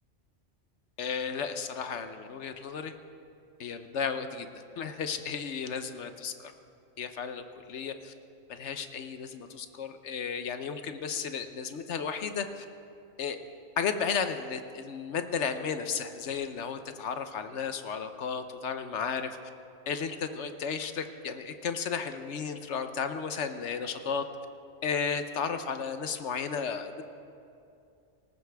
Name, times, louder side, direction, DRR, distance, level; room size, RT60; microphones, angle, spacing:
voice 1, 1.0-2.9 3.6-4.5 4.8-6.3 7.0-8.1 8.5-12.6 13.2-13.4 13.8-19.3 19.9-24.2 24.8-27.0, left 6 dB, 70° left, 8 dB, 1.1 m, -33 dB
19.0 x 19.0 x 3.5 m, 2.5 s
omnidirectional pair, 1.2 m